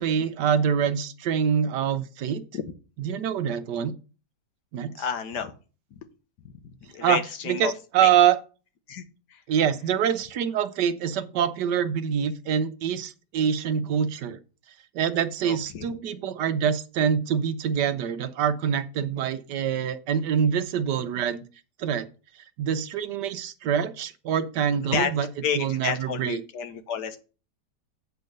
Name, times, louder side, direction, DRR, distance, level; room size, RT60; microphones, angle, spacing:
voice 1, 0.0-2.4 3.0-3.9 4.7-4.9 7.0-7.2 7.5-8.4 9.5-14.4 14.9-21.4 21.8-22.1 22.6-25.3 25.5-26.4, right 8 dB, 70° right, 11 dB, 1.3 m, -25 dB
voice 2, 5.0-5.5 5.9-6.0 6.4-6.5 6.8-7.7 8.0-8.1 8.9-9.0 9.3-9.4 15.4-15.9 24.9-25.1 25.4-27.2, left 7 dB, 70° left, 9 dB, 1.6 m, -30 dB
8.2 x 4.6 x 6.5 m, 0.34 s
omnidirectional pair, 1.9 m